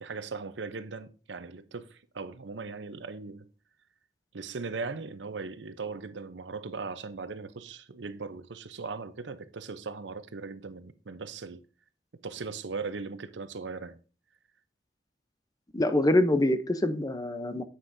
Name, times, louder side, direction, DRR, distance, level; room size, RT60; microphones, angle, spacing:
voice 1, 0.0-3.5 4.3-11.6 12.2-14.0, right 4 dB, 85° right, 0.7 m, -39 dB
voice 2, 15.7-17.6, left 1 dB, 20° left, 0.7 m, -25 dB
9.6 x 8.1 x 2.7 m
head